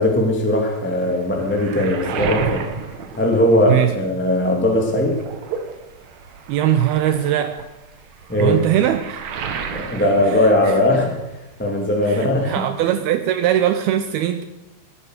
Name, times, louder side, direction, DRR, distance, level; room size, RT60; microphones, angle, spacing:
voice 1, 0.0-2.6 3.2-5.2 8.3-8.6 9.7-11.1 11.6-12.7, left 1 dB, 5° left, 0 dB, 1.2 m, -19 dB
Waves surf, 0.9-4.1 4.5-11.4 11.6-12.6, right 7 dB, 65° right, 1.7 m, -32 dB
voice 2, 6.5-7.7 8.4-9.2 10.3-10.8 12.1-14.4, right 11 dB, 90° right, 9 dB, 2.2 m, -20 dB
19.5 x 10.0 x 6.6 m, 0.97 s
omnidirectional pair, 5.2 m